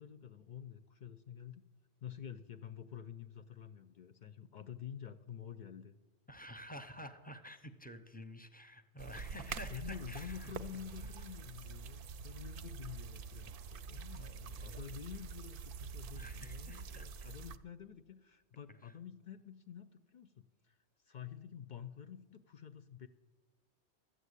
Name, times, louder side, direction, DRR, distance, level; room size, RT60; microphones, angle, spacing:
voice 1, 0.0-1.6 2.0-5.9 9.5-20.8 21.0-23.1, left 9 dB, 60° left, 11 dB, 0.5 m, -49 dB
voice 2, 6.3-10.5 11.0-11.1 14.1-15.0 16.1-17.3 18.7-19.0, equal, 10° left, 9 dB, 0.6 m, -51 dB
sound 1, 9.0-17.6, right 5 dB, 60° right, 0.7 m, -46 dB
12.5 x 7.9 x 8.2 m, 1.3 s
omnidirectional pair, 1.1 m